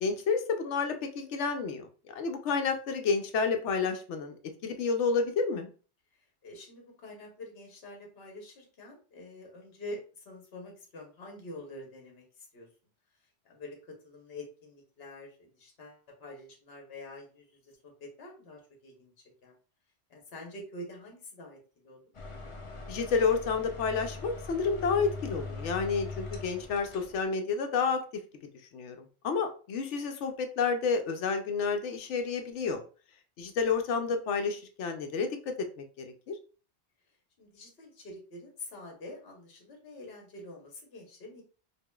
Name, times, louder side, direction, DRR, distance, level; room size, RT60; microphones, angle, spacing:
voice 1, 0.0-4.3 4.6-5.7 22.9-28.0 28.7-32.8 33.4-35.4 35.8-36.3, left 5 dB, 80° left, 6 dB, 0.9 m, -30 dB
voice 2, 6.4-12.7 13.4-13.8 14.0-19.1 19.4-19.5 20.1-22.0 37.4-41.4, left 1 dB, 60° left, 1 dB, 1.2 m, -46 dB
sound 1, 22.1-27.2, left 3 dB, 45° left, 0.4 m, -41 dB
4.7 x 2.5 x 2.2 m, 0.38 s
omnidirectional pair, 1.2 m